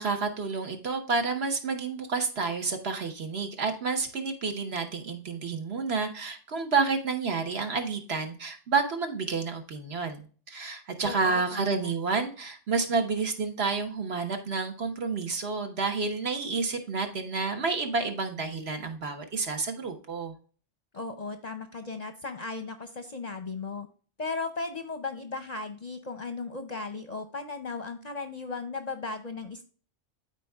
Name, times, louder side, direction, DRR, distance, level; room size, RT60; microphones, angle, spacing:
voice 1, 0.0-20.3, right 4 dB, 60° right, 5 dB, 1.4 m, -30 dB
voice 2, 11.0-11.9 20.9-23.9 24.2-29.6, left 3 dB, 40° left, 8 dB, 0.7 m, -36 dB
13.0 x 4.3 x 2.3 m, 0.40 s
omnidirectional pair, 1.3 m